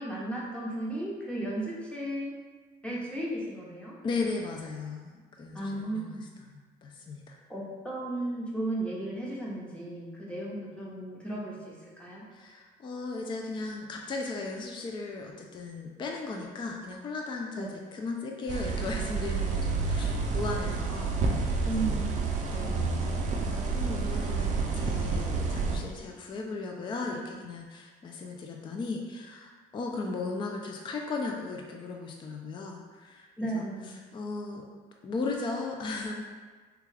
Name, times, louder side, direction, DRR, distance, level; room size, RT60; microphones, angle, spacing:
voice 1, 0.0-2.3 2.8-3.9 5.5-6.2 7.5-12.2 17.6-17.7 21.6-22.1 33.4-34.0, right 1 dB, 5° left, -5 dB, 0.8 m, -35 dB
voice 2, 4.0-5.1 5.4-7.4 12.3-21.9 22.5-34.7 35.0-36.1, left 3 dB, 30° left, 1 dB, 0.3 m, -37 dB
sound 1, 18.5-25.8, right 4 dB, 45° right, 0.4 m, -29 dB
3.5 x 2.3 x 3.2 m, 1.4 s
cardioid pair, 110°, 17 cm